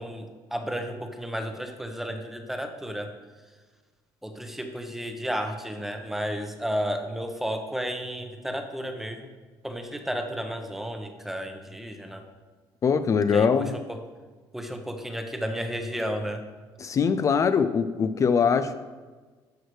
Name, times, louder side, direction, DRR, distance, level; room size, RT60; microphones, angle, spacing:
voice 1, 0.0-3.1 4.2-9.3 9.6-12.2 13.3-13.5 14.5-16.4, equal, 5° right, 5 dB, 1.0 m, -32 dB
voice 2, 12.8-13.7 16.8-18.7, left 6 dB, 35° left, 10 dB, 0.4 m, -22 dB
11.0 x 6.3 x 3.2 m, 1.4 s
cardioid pair, 110°, 9 cm